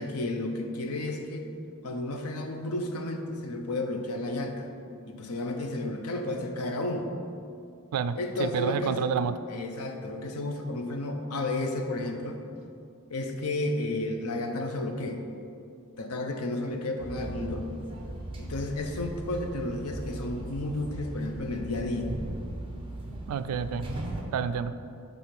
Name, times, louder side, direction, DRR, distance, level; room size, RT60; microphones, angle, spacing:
voice 1, 0.0-1.4 1.8-4.7 5.1-7.1 8.2-9.1 9.5-12.4 13.1-15.2 16.0-17.7 18.4-22.1, left 2 dB, 85° left, 4 dB, 0.7 m, -32 dB
voice 2, 7.9-9.3 23.3-23.9 24.3-24.7, right 7 dB, 80° right, 12 dB, 0.3 m, -29 dB
sound 1, 17.0-24.2, right 1 dB, 25° right, 0.8 m, -38 dB
6.7 x 3.7 x 5.8 m, 2.5 s
head